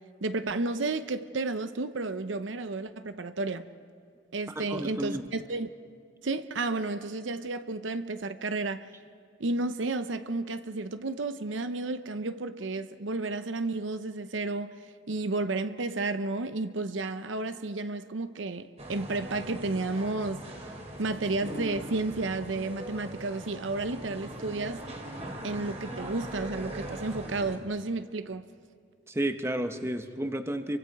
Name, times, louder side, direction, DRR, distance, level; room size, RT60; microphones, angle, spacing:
voice 1, 0.2-3.7 4.3-5.7 6.2-8.9 9.4-14.7 15.1-20.4 21.0-24.9 25.4-28.4, right 3 dB, 80° right, 0.8 m, -32 dB
voice 2, 4.7-5.2 29.1-30.8, right 1 dB, 15° right, 1.0 m, -31 dB
sound 1, 18.8-27.6, right 1 dB, 35° right, 2.6 m, -40 dB
29.5 x 24.0 x 4.8 m
head